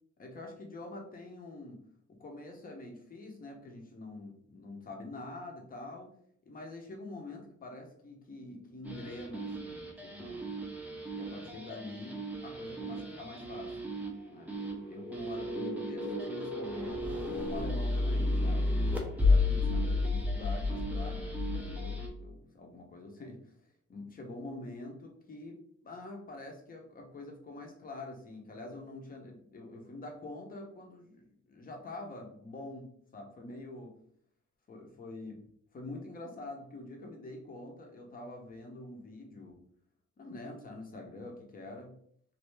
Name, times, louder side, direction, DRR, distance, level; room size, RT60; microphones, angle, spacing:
voice 1, 0.2-1.8 2.1-6.1 6.4-10.5 11.1-13.8 14.3-14.5 14.9-17.2 17.5-23.6 23.9-25.6 25.8-33.9 34.7-35.4 35.7-39.6 40.2-41.9, left 2 dB, 30° left, 2 dB, 0.7 m, -45 dB
sound 1, 8.8-22.1, left 2 dB, 5° right, 0.4 m, -32 dB
3.1 x 2.6 x 3.2 m, 0.66 s
wide cardioid pair, 180°, 29 cm